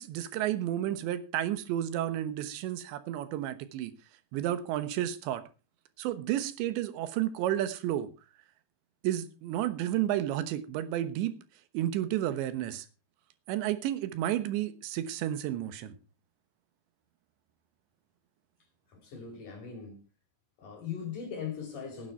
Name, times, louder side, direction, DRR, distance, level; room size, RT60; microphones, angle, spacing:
voice 1, 0.0-3.9 4.3-5.4 6.0-8.1 9.0-11.3 11.7-12.9 13.5-16.0, right 12 dB, 75° right, 3.1 m, -31 dB
voice 2, 18.9-20.0 20.6-22.1, left 7 dB, 40° left, 5.6 m, -39 dB
17.5 x 9.2 x 4.5 m
omnidirectional pair, 5.9 m